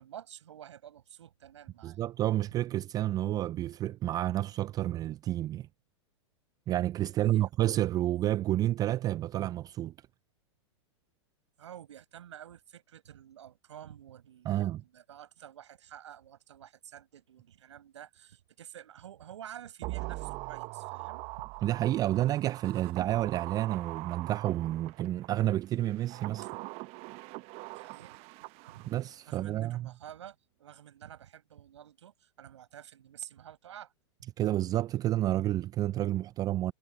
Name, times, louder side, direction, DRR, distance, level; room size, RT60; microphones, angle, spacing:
voice 1, 0.0-2.0 7.2-7.7 11.6-21.5 26.4-26.5 27.7-28.2 28.7-28.9 29.3-33.9, right 10 dB, 75° right, 6.7 m, -50 dB
voice 2, 1.8-5.7 6.7-9.9 14.5-14.8 21.6-26.4 28.8-29.9 34.4-36.7, right 14 dB, 25° right, 0.4 m, -30 dB
sound 1, 19.8-25.3 25.9-29.1 29.4-29.5, right 24 dB, 40° right, 0.9 m, -42 dB
hypercardioid pair, 110°, 15 cm